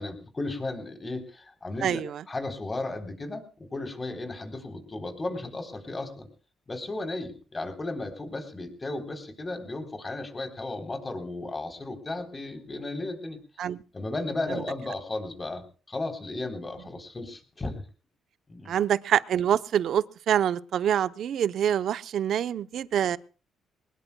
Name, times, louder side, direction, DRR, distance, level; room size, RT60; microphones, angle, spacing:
voice 1, 0.0-6.3 6.7-13.4 13.9-17.8 18.5-18.8, left 2 dB, 25° left, 3.6 m, -35 dB
voice 2, 1.8-2.2 13.6-13.8 14.5-14.6 18.7-23.2, right 9 dB, 70° right, 0.7 m, -26 dB
22.5 x 19.5 x 2.3 m
cardioid pair, 90°, 0 cm